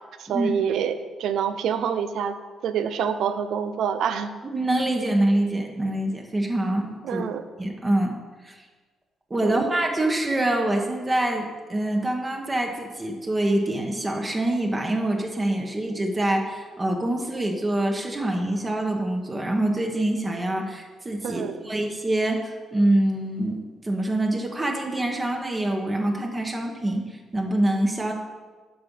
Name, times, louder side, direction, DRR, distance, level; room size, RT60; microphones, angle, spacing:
voice 1, 0.2-2.4 2.6-4.3 7.0-7.4 9.4-9.7 21.2-21.6, right 8 dB, 75° right, 10 dB, 0.6 m, -26 dB
voice 2, 4.4-7.3 7.6-8.2 8.4-8.6 9.3-28.1, right 1 dB, 25° right, 1 dB, 1.2 m, -25 dB
8.7 x 5.8 x 5.5 m, 1.4 s
cardioid pair, 90°, 0 cm